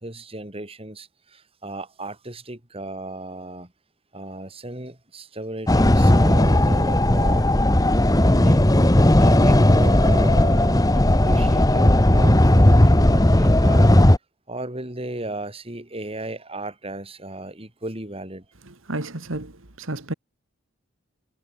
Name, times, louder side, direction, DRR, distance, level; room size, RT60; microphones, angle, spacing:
voice 1, 0.0-3.7 4.1-7.5 8.1-8.6 9.2-13.9 14.5-18.4, right 1 dB, 30° right, 3.4 m, -35 dB
sound 1, 5.7-14.2, left 1 dB, 20° left, 1.1 m, -16 dB
voice 2, 18.6-20.1, right 2 dB, 75° right, 2.4 m, -32 dB
head